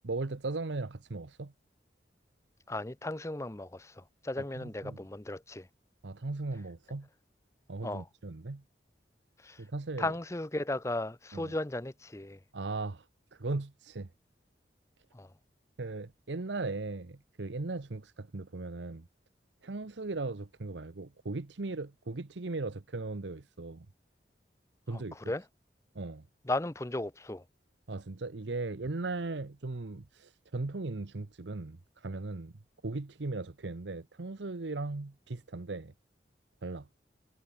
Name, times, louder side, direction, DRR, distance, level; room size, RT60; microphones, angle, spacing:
voice 1, 0.0-1.5 4.6-5.0 6.0-7.1 7.7-8.6 9.6-10.1 11.3-11.5 12.5-14.1 15.8-19.1 19.6-23.9 24.9-25.2 25.9-26.3 27.9-35.9 36.6-36.9, right 3 dB, 90° right, 0.9 m, -38 dB
voice 2, 2.7-5.7 7.8-8.1 9.4-9.6 10.0-12.4 15.1-15.3 24.9-25.4 26.4-27.4, left 2 dB, 15° left, 0.7 m, -36 dB
head